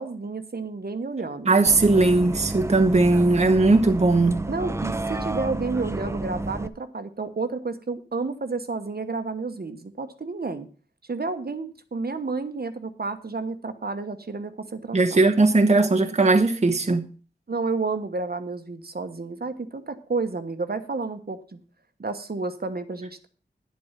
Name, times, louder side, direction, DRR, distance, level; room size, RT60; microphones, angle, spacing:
voice 1, 0.0-1.5 4.4-10.7 11.1-15.2 17.5-21.6 22.0-23.3, right 3 dB, 55° right, 1.2 m, -31 dB
voice 2, 1.5-4.4 14.9-17.1, right 3 dB, 35° right, 1.0 m, -19 dB
Bus, 1.7-6.7, right 2 dB, 15° right, 0.6 m, -30 dB
10.5 x 8.0 x 5.7 m
wide cardioid pair, 60°, 19 cm